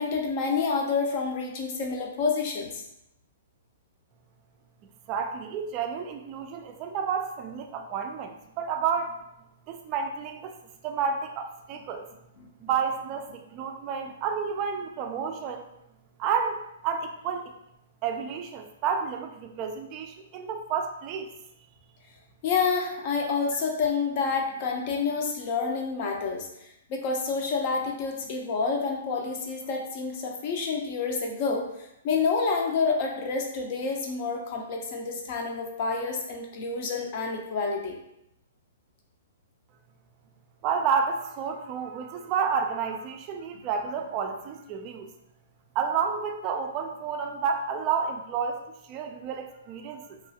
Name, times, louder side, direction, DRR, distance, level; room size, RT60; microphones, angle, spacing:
voice 1, 0.0-2.8 12.4-12.5 22.4-31.7 32.0-38.0, left 4 dB, 40° left, 1 dB, 0.6 m, -28 dB
voice 2, 5.1-9.2 9.7-10.6 10.8-12.1 12.6-15.6 16.2-17.5 18.0-21.3 40.6-45.1 45.8-50.2, right 6 dB, 30° right, 5 dB, 0.3 m, -30 dB
2.9 x 2.3 x 2.7 m, 0.81 s
hypercardioid pair, 155°, 0 cm